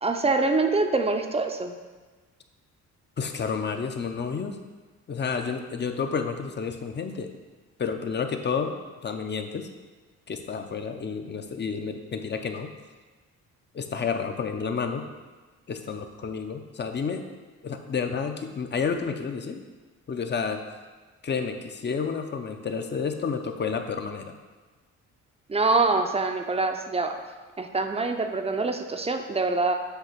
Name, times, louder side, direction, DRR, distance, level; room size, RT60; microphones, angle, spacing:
voice 1, 0.0-1.7 25.5-27.2 27.6-29.7, right 3 dB, 20° right, 6 dB, 0.6 m, -25 dB
voice 2, 3.2-4.6 5.1-7.3 7.8-8.8 9.0-9.7 10.3-12.7 13.7-15.1 15.7-17.3 17.6-19.6 20.1-20.6 21.2-24.3, left 5 dB, 35° left, 6 dB, 0.7 m, -30 dB
8.0 x 2.9 x 5.8 m, 1.3 s
cardioid pair, 90°, 30 cm